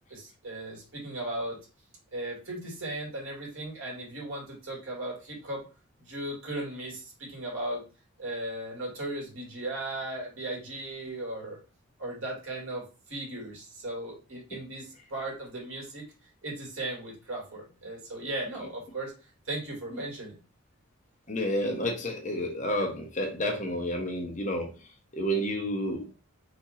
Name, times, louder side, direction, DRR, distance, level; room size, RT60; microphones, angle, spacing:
voice 1, 0.1-1.6 2.1-5.7 6.0-7.8 8.2-11.6 12.0-16.0 16.4-19.1 19.5-20.4, right 1 dB, 70° right, -2 dB, 2.4 m, -37 dB
voice 2, 21.3-24.7 25.1-26.1, equal, 35° left, 2 dB, 1.0 m, -30 dB
4.4 x 2.9 x 4.2 m, 0.33 s
head